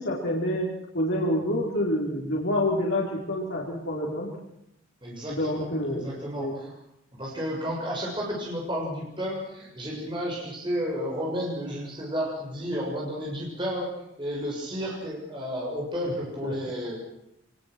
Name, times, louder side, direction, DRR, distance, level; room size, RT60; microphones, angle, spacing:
voice 1, 0.0-4.3 5.3-6.6 16.0-16.1 16.4-16.5, left 1 dB, 70° left, -4 dB, 4.8 m, -28 dB
voice 2, 5.0-6.8 7.1-17.0, equal, 25° right, -3 dB, 6.6 m, -32 dB
24.5 x 21.5 x 6.3 m, 0.81 s
head